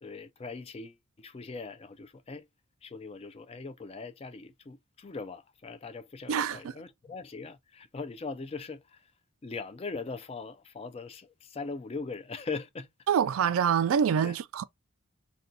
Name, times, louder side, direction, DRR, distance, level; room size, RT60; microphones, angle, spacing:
voice 1, 0.0-2.5 2.8-9.0 9.4-12.9 14.2-14.4, left 4 dB, 25° left, 0.3 m, -40 dB
voice 2, 6.3-6.7 13.1-14.6, right 8 dB, 70° right, 0.3 m, -26 dB
2.6 x 2.2 x 3.8 m
head